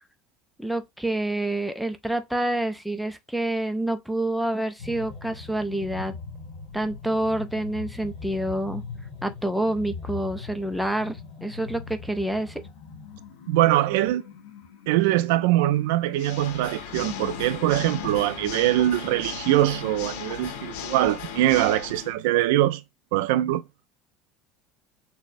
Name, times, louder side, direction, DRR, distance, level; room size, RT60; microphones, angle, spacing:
voice 1, 0.6-6.1 6.7-8.8 9.2-12.6, right 1 dB, ahead, 0.3 m, -27 dB
sound 1, 4.8-22.1, left 5 dB, 60° left, 2.1 m, -41 dB
voice 2, 13.5-14.2 14.9-22.8 23.1-23.6, right 14 dB, 80° right, 0.4 m, -22 dB
Water / Mechanisms, 16.1-22.1, left 8 dB, 80° left, 0.9 m, -37 dB
6.2 x 2.1 x 2.6 m
cardioid pair, 180°, 0 cm